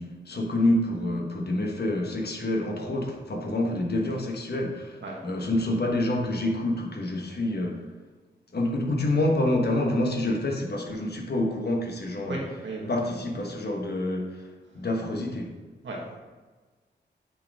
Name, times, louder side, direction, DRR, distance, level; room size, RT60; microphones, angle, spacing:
voice 1, 0.0-7.8 8.5-12.4 12.9-14.5 14.7-15.6, left 1 dB, 55° left, 1 dB, 1.3 m, -27 dB
voice 2, 12.2-13.2 15.8-16.0, right 2 dB, 75° right, -2 dB, 1.6 m, -35 dB
8.3 x 4.0 x 3.6 m, 1.3 s
cardioid pair, 45°, 19 cm